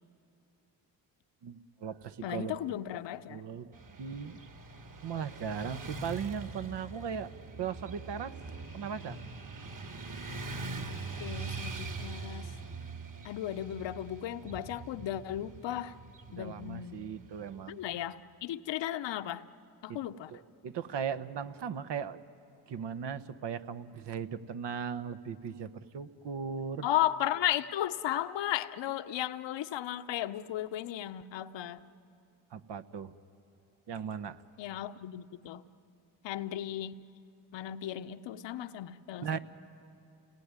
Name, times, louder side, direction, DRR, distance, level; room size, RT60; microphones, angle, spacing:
voice 1, 1.4-2.5 3.3-4.4 5.0-7.3 7.6-8.4 8.7-9.2 16.3-17.8 19.9-20.0 20.3-22.2 22.7-26.9 32.5-33.1 33.9-34.4 39.2-39.4, right 7 dB, 65° right, 11 dB, 1.2 m, -38 dB
voice 2, 2.2-3.4 11.2-12.5 13.2-15.9 16.3-17.1 17.7-19.4 19.8-20.3 26.8-31.8 34.6-35.6 36.2-36.9 37.5-39.3, left 12 dB, 65° left, 11 dB, 1.0 m, -35 dB
Motorcycle / Traffic noise roadway noise, 3.7-17.8, right 3 dB, 40° right, 2.5 m, -43 dB
30.0 x 19.0 x 9.8 m, 2.8 s
supercardioid pair, 65°, 46 cm